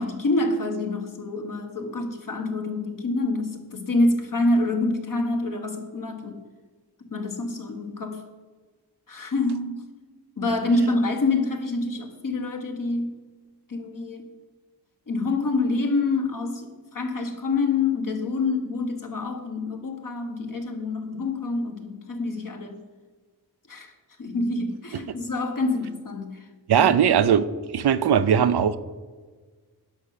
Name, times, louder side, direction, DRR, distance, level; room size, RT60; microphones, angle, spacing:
voice 1, 0.0-6.4 7.1-8.2 9.1-9.8 10.4-13.2 13.7-14.2 15.1-22.8 23.7-23.9 24.2-26.4 26.8-26.9, left 2 dB, 55° left, 4 dB, 1.5 m, -26 dB
voice 2, 26.7-28.8, right 8 dB, 85° right, 13 dB, 0.6 m, -20 dB
10.5 x 5.6 x 6.6 m, 1.4 s
wide cardioid pair, 70°, 38 cm